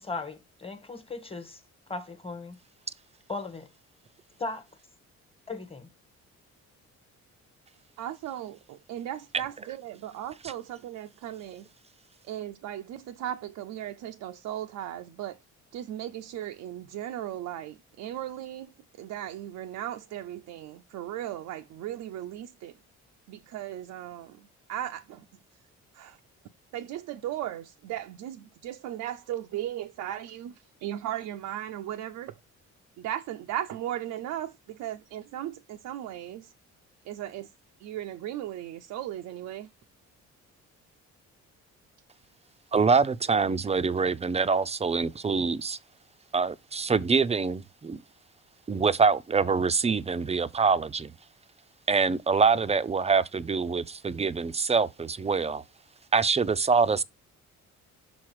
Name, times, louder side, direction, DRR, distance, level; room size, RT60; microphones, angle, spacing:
voice 1, 0.0-1.6 1.9-2.6 3.3-3.7 4.4-4.7 5.5-5.9, left 3 dB, 20° left, 1.4 m, -37 dB
voice 2, 8.0-11.6 12.2-15.4 15.7-22.8 23.3-25.3 25.9-26.2 26.7-32.4 33.0-36.5 37.0-37.5 37.8-39.7, right 12 dB, 80° right, 0.6 m, -37 dB
voice 3, 42.7-45.8 46.3-48.0 48.7-51.1 51.9-55.6 56.1-57.0, right 5 dB, 20° right, 0.5 m, -25 dB
6.1 x 4.0 x 4.7 m
cardioid pair, 90°, 30 cm